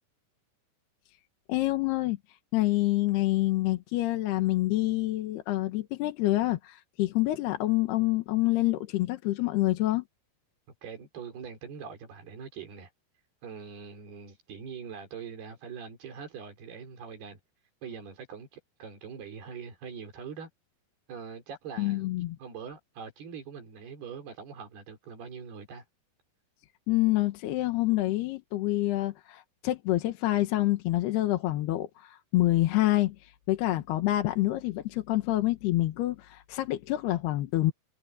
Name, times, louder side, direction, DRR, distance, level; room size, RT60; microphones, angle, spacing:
voice 1, 1.5-2.2 2.5-10.0 21.8-22.4 26.9-37.7, left 17 dB, 80° left, 3.3 m, -27 dB
voice 2, 10.8-12.9 13.4-17.4 17.8-20.5 21.1-22.1 22.4-25.8, right 6 dB, 75° right, 6.4 m, -43 dB
omnidirectional pair, 4.6 m